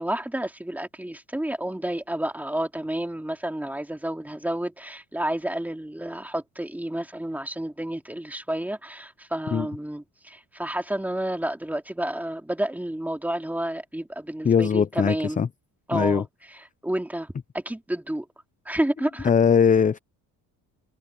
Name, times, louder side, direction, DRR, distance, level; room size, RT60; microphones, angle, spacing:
voice 1, 0.0-15.4 15.9-18.3 18.7-19.3, right 1 dB, 5° right, 2.6 m, -30 dB
voice 2, 14.4-15.5 15.9-16.2 19.2-20.0, left 7 dB, 20° left, 0.6 m, -20 dB
cardioid pair, 120°, 37 cm